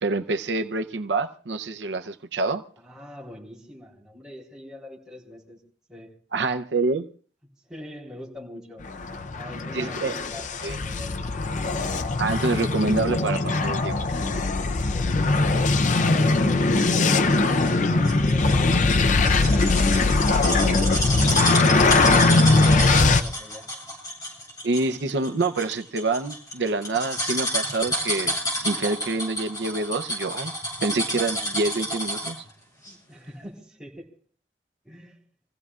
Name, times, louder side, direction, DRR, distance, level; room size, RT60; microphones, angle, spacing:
voice 1, 0.0-2.6 6.3-7.0 9.7-10.2 10.6-10.8 12.2-14.0 24.6-30.5 30.8-32.4, right 3 dB, 85° right, 0.7 m, -26 dB
voice 2, 2.8-5.6 5.9-6.2 7.7-8.8 9.3-11.3 14.9-16.8 17.1-18.8 19.2-23.7 32.9-34.1 34.8-35.2, left 1 dB, 5° right, 4.1 m, -43 dB
sound 1, 8.8-23.2, left 3 dB, 45° left, 0.6 m, -21 dB
sound 2, 17.3-32.5 32.8-32.9, equal, 20° left, 7.7 m, -30 dB
27.5 x 16.0 x 2.4 m
head